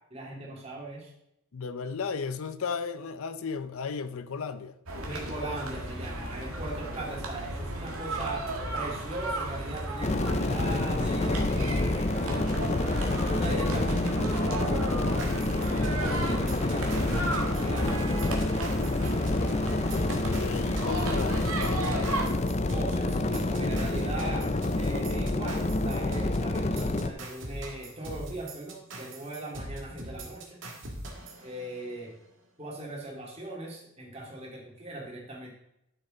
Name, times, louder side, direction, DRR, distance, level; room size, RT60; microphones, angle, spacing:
voice 1, 0.1-1.1 5.0-8.5 8.7-11.5 11.8-12.5 13.0-18.4 22.7-30.6 31.4-32.1 32.6-35.5, right 1 dB, 30° right, -2 dB, 2.5 m, -39 dB
voice 2, 1.5-4.7 19.8-22.3, left 5 dB, 75° left, 13 dB, 0.5 m, -35 dB
sound 1, 4.9-22.3, right 2 dB, 80° right, 1.8 m, -35 dB
sound 2, 10.0-27.1, left 2 dB, 30° left, 0.5 m, -28 dB
sound 3, 15.2-32.1, right 1 dB, 60° right, 1.9 m, -41 dB
11.5 x 6.5 x 3.8 m, 0.82 s
head